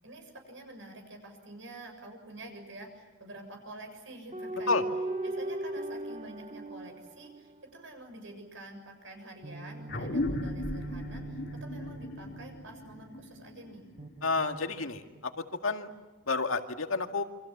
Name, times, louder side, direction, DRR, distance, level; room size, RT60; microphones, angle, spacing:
voice 1, 0.0-4.8 5.2-13.9, right 1 dB, 65° right, 5 dB, 7.1 m, -48 dB
sound 1, 4.3-8.0 9.4-13.2 14.0-15.2, right 2 dB, 35° right, 1.4 m, -39 dB
sound 2, 9.9-14.8, left 1 dB, 55° left, 2.6 m, -37 dB
voice 2, 14.2-15.9 16.3-17.2, left 3 dB, 85° left, 5 dB, 2.1 m, -30 dB
28.5 x 25.5 x 7.3 m, 1.2 s
head